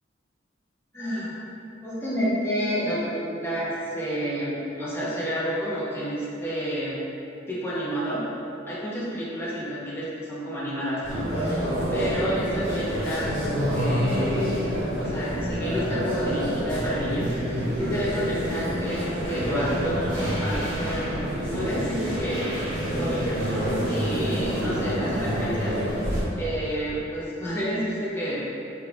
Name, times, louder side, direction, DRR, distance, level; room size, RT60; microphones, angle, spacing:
voice 1, 0.9-1.4 1.8-6.9 7.5-8.2 8.7-14.6 15.0-21.0 21.5-22.5 22.9-23.4 23.9-26.1 26.4-28.5, equal, 15° left, -9 dB, 0.7 m, -30 dB
sound 1, 11.0-26.2, equal, 70° right, 1.3 m, -27 dB
3.5 x 2.4 x 3.4 m, 2.8 s
head